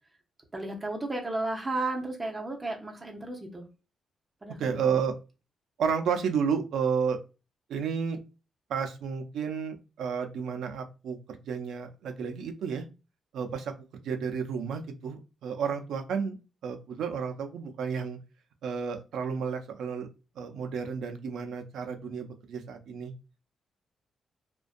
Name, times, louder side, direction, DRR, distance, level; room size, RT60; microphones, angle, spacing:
voice 1, 0.5-3.7 4.4-5.0, right 2 dB, 20° right, 0 dB, 0.7 m, -34 dB
voice 2, 4.6-5.1 5.8-7.2 7.7-8.2 8.7-12.8 13.3-16.4 16.6-18.2 18.6-20.1 20.4-23.1, right 6 dB, 85° right, 6 dB, 0.4 m, -31 dB
2.5 x 2.2 x 2.4 m, 0.31 s
cardioid pair, 125°, 0 cm